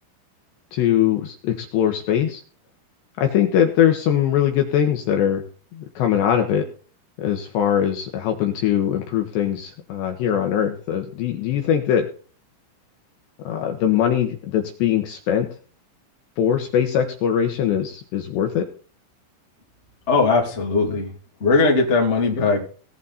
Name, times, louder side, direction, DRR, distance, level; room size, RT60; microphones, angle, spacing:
voice 1, 0.7-2.4 3.2-5.4 5.7-6.6 7.2-12.1 13.4-15.5 16.4-18.6, left 9 dB, 70° left, 4 dB, 2.9 m, -21 dB
voice 2, 20.1-21.1 21.4-22.6, left 3 dB, 20° left, 0 dB, 2.2 m, -19 dB
18.5 x 8.2 x 4.1 m, 0.41 s
omnidirectional pair, 5.9 m